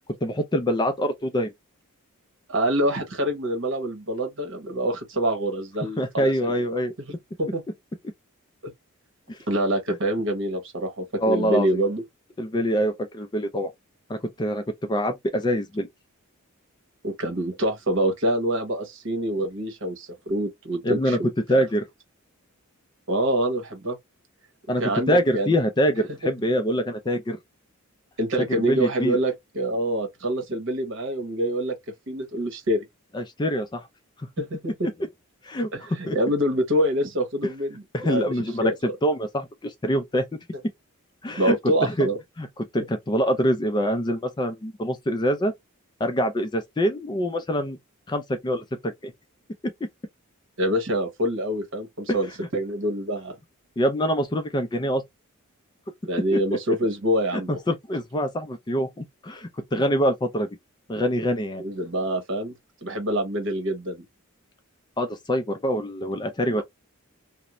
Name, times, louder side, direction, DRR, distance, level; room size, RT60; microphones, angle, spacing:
voice 1, 0.2-1.5 6.0-6.9 9.3-9.4 11.2-11.8 12.4-13.7 14.1-15.9 20.8-21.2 21.5-21.8 24.7-24.8 25.1-27.4 28.4-29.2 33.1-33.8 35.4-35.7 36.1-36.3 37.9-38.7 39.0-40.3 41.2-41.6 41.8-42.1 42.4-42.5 42.7-45.5 46.0-47.8 48.1-49.1 53.8-55.0 56.3-56.4 57.7-60.5 60.9-61.6 65.0-66.6, equal, 20° left, 0.4 m, -25 dB
voice 2, 2.5-6.3 7.4-7.6 9.5-12.0 17.0-21.3 23.1-24.0 24.8-25.6 26.2-26.3 28.2-31.7 32.1-32.8 34.4-34.9 35.7-38.2 38.6-38.7 41.4-42.2 50.6-53.4 56.0-57.6 61.6-62.5 62.8-64.0, right 1 dB, 60° right, 1.0 m, -26 dB
2.5 x 2.0 x 2.9 m
head